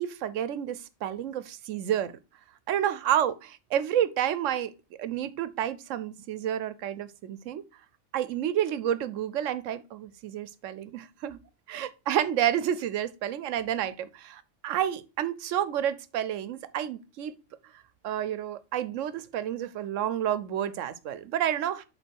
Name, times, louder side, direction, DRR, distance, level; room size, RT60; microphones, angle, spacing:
voice 1, 0.0-2.1 2.7-4.7 5.0-7.6 8.1-11.4 11.7-17.3 18.0-21.8, right 10 dB, 85° right, 1.0 m, -30 dB
8.1 x 3.8 x 4.5 m
omnidirectional pair, 1.3 m